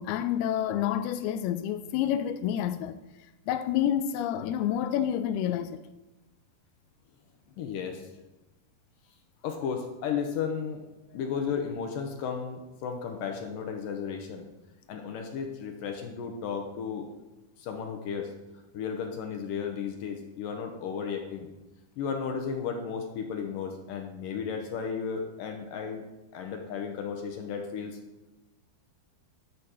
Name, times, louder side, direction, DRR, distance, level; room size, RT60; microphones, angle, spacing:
voice 1, 0.0-3.0 3.5-5.9, left 10 dB, 90° left, 2.6 m, -28 dB
voice 2, 7.6-8.1 9.4-10.8 11.1-14.5 14.9-17.1 17.6-18.3 18.7-21.5 22.0-26.0 26.3-28.0, left 6 dB, 75° left, 2.3 m, -34 dB
12.5 x 5.2 x 6.3 m
omnidirectional pair, 4.4 m